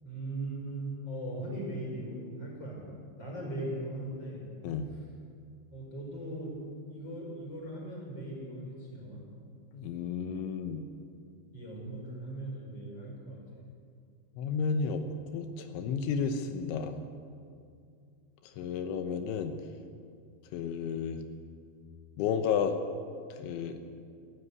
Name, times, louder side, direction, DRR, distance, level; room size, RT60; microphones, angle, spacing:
voice 1, 0.0-2.9 3.2-4.4 5.0-5.1 5.7-6.6 6.9-9.2 11.5-13.4, right 1 dB, 25° left, -2 dB, 5.7 m, -39 dB
voice 2, 9.7-10.8 14.4-17.0 18.6-19.5 20.5-21.2 22.2-22.8 23.4-23.8, left 6 dB, 85° left, 7 dB, 3.4 m, -32 dB
18.5 x 15.5 x 9.6 m, 2.3 s
omnidirectional pair, 5.2 m